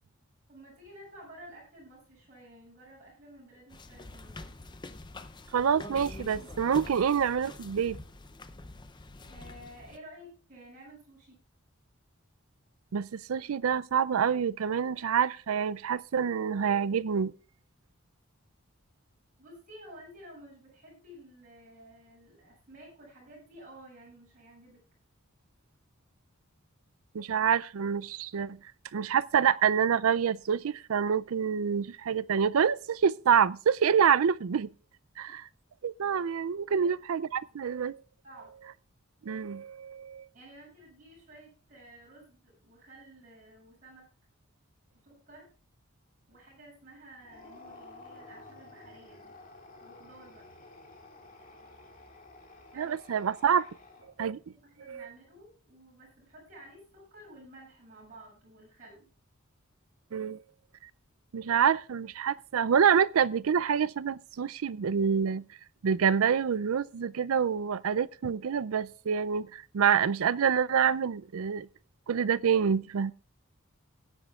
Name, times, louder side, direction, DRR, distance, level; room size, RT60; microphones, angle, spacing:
voice 1, 0.5-4.5 9.2-11.4 19.4-24.8 35.3-35.4 36.7-36.8 37.3-37.6 38.2-38.5 40.3-44.1 45.0-45.5 46.3-49.4 49.8-50.5 52.7-52.9 53.5-53.6 54.2-59.1, right 1 dB, 40° right, 7.5 m, -52 dB
sound 1, 3.7-10.0, left 2 dB, 20° left, 0.6 m, -45 dB
voice 2, 5.5-8.0 12.9-17.3 27.1-28.6 28.9-34.7 35.2-35.4 35.8-38.0 39.2-40.3 52.8-53.6 54.2-54.4 54.9-55.1 60.1-60.4 61.3-65.4 65.8-71.7 72.1-73.1, right 7 dB, 90° right, 0.4 m, -27 dB
sound 2, 47.2-54.4, left 2 dB, 40° left, 2.2 m, -52 dB
17.5 x 9.9 x 2.4 m
head